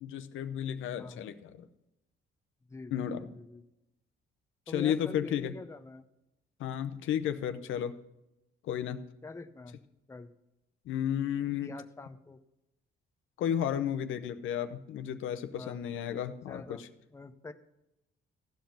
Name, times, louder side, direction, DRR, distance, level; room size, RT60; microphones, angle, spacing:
voice 1, 0.0-1.7 2.9-3.3 4.7-5.5 6.6-7.9 8.6-9.0 10.9-11.7 13.4-16.9, left 9 dB, 80° left, 9 dB, 0.8 m, -33 dB
voice 2, 2.7-3.6 4.7-6.0 9.2-9.8 10.1-10.3 11.6-12.4 15.6-15.8 16.5-16.8 17.1-17.5, left 3 dB, 15° left, 8 dB, 0.7 m, -45 dB
15.0 x 5.2 x 5.8 m, 0.89 s
cardioid pair, 90°, 20 cm